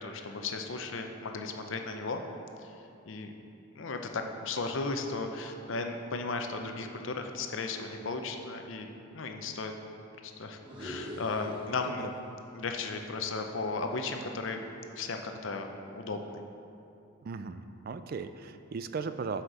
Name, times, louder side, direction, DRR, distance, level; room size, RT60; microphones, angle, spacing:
voice 1, 0.0-2.2 3.1-3.3 3.8-9.7 10.2-12.1 12.5-14.6 15.0-16.4, left 3 dB, 65° left, 4 dB, 0.6 m, -35 dB
sound 1, 10.6-12.3 12.6-14.8, equal, 20° right, 1.1 m, -45 dB
voice 2, 17.2-19.4, right 5 dB, 45° right, 10 dB, 0.3 m, -37 dB
7.9 x 5.8 x 4.9 m, 2.7 s
head